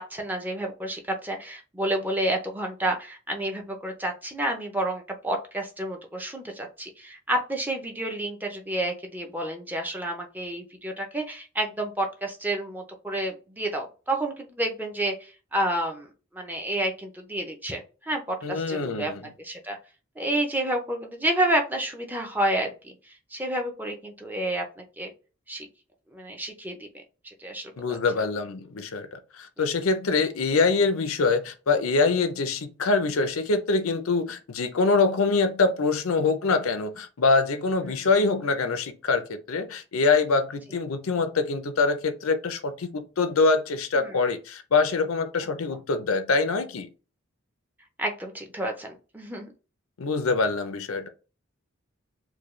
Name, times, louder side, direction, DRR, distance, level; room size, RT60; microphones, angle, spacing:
voice 1, 0.0-19.1 19.4-19.8 20.2-22.9 23.3-25.1 25.5-25.7 26.1-26.9 27.2-28.0 37.9-38.1 44.0-44.1 45.4-45.5 48.0-49.5, right 1 dB, 10° right, 0.6 m, -30 dB
voice 2, 18.4-19.2 27.8-46.9 50.0-51.1, left 4 dB, 80° left, 0.6 m, -24 dB
4.5 x 2.3 x 3.1 m
head